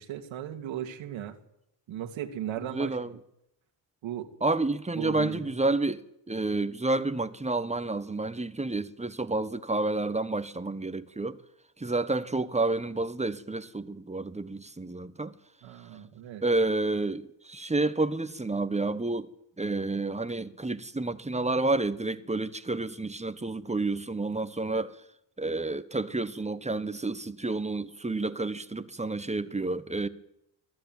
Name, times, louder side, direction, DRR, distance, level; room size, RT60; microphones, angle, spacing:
voice 1, 0.0-1.4 1.9-3.0 4.0-4.3 5.0-5.5 15.6-16.4, right 10 dB, 80° right, 2.6 m, -36 dB
voice 2, 2.7-3.1 4.4-11.4 11.8-15.3 16.4-19.3 19.6-24.9 25.4-30.1, right 2 dB, 15° right, 1.4 m, -30 dB
24.0 x 14.5 x 9.2 m
cardioid pair, 85°, 46 cm